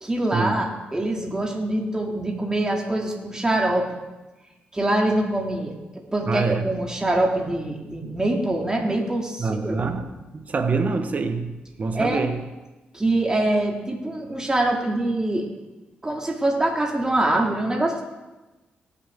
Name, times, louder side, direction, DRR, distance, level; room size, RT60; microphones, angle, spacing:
voice 1, 0.0-3.9 4.7-9.8 11.9-12.3 12.9-15.4 16.0-18.0, right 1 dB, 20° right, 0 dB, 2.4 m, -24 dB
voice 2, 6.3-6.8 9.4-11.5 11.8-12.4, right 4 dB, 45° right, 7 dB, 1.1 m, -25 dB
19.0 x 7.1 x 3.6 m, 1.1 s
cardioid pair, 75°, 4 cm